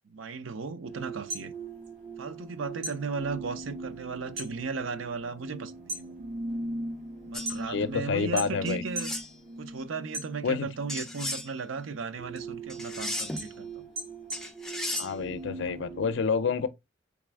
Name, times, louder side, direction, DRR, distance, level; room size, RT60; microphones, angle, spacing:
voice 1, 0.0-1.5 2.2-6.2 7.3-9.1 9.6-13.9, right 4 dB, 85° right, 0.6 m, -36 dB
sound 1, 0.9-16.1, right 2 dB, 35° right, 2.2 m, -41 dB
sound 2, 1.1-2.5 2.8-4.6 4.9-5.4 5.7-7.9 8.4-9.2 9.6-10.8 11.2-15.8, right 1 dB, 55° right, 1.4 m, -39 dB
sound 3, 7.3-7.5 8.7-9.3 10.9-11.5 12.7-13.5 14.3-15.1, left 1 dB, ahead, 0.5 m, -35 dB
voice 2, 7.7-8.8 10.4-10.7 14.9-16.7, left 5 dB, 65° left, 0.5 m, -28 dB
4.1 x 3.5 x 3.4 m
head